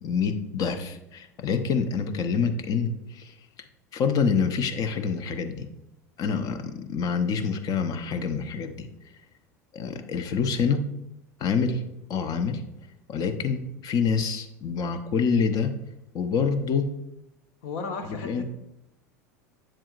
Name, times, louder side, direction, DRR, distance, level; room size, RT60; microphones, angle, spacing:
voice 1, 0.0-3.3 3.9-5.7 6.2-8.9 9.7-10.8 11.4-11.8 12.1-12.6 13.1-15.7 16.1-16.9 18.2-18.4, left 5 dB, 40° left, 8 dB, 0.9 m, -26 dB
voice 2, 17.6-18.4, left 4 dB, 60° left, 5 dB, 1.3 m, -34 dB
7.7 x 7.4 x 2.5 m, 0.88 s
hypercardioid pair, 85°, 9 cm